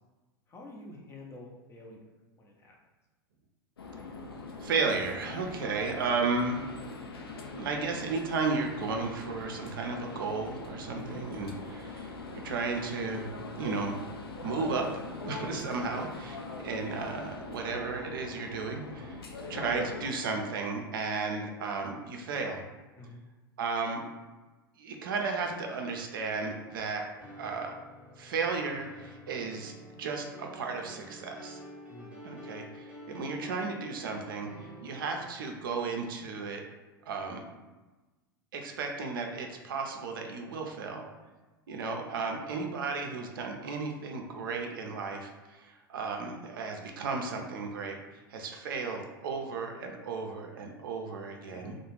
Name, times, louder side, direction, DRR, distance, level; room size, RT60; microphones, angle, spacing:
voice 1, 0.5-2.0 2.4-2.8 10.9-11.2 15.9-16.1 23.0-23.2 31.9-32.1 51.5-51.8, left 2 dB, 20° left, -1 dB, 0.6 m, -47 dB
sound 1, 3.8-20.1, left 3 dB, 85° left, 0.4 m, -42 dB
voice 2, 4.6-6.7 7.5-12.2 12.4-14.0 14.4-14.9 15.3-16.1 16.6-22.6 23.6-24.0 24.8-27.1 27.4-27.8 28.2-31.6 32.2-36.6 37.1-37.4 38.5-41.0 41.7-48.0 48.3-51.7, right 4 dB, 65° right, 2 dB, 0.4 m, -34 dB
sound 2, 27.2-35.5, equal, 10° right, 0.8 m, -48 dB
2.3 x 2.1 x 3.1 m, 1.2 s
figure-of-eight pair, 90°, 12 cm